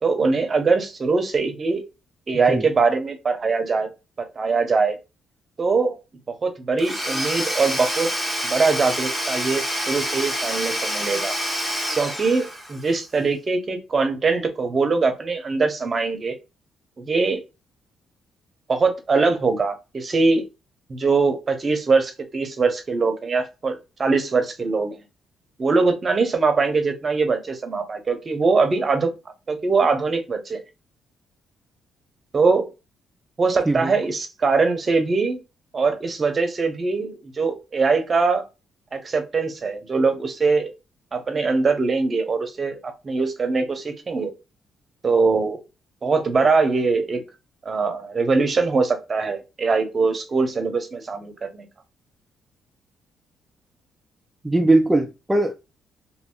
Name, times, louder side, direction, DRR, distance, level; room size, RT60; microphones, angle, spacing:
voice 1, 0.0-1.8 2.3-3.9 4.2-4.9 5.6-6.0 6.3-8.1 8.4-11.3 12.0-16.4 17.0-17.4 18.7-20.4 20.9-25.0 25.6-29.1 29.5-30.6 32.3-32.7 33.4-35.4 35.7-38.4 38.9-40.7 41.1-44.3 45.0-45.6 46.0-47.2 47.6-51.7, right 4 dB, 35° right, 0.8 m, -22 dB
Domestic sounds home sounds / Tools, 6.8-12.9, equal, 5° left, 1.1 m, -27 dB
voice 2, 54.4-55.5, right 2 dB, 15° right, 0.4 m, -19 dB
2.8 x 2.7 x 2.3 m
cardioid pair, 90°, 0 cm